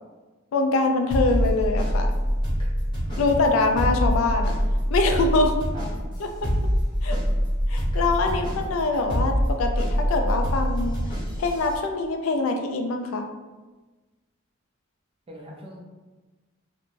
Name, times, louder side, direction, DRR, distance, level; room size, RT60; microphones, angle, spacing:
voice 1, 0.5-2.1 3.2-4.6 4.9-5.5 6.2-6.5 7.0-7.2 7.7-11.0 11.4-13.3, left 3 dB, 75° left, 4 dB, 0.3 m, -24 dB
sound 1, 1.1-11.8, equal, 25° left, 0.9 m, -25 dB
voice 2, 3.1-3.8 5.7-5.8 8.2-8.5 15.3-15.8, right 1 dB, 25° right, -2 dB, 0.5 m, -43 dB
3.1 x 2.1 x 2.5 m, 1.2 s
head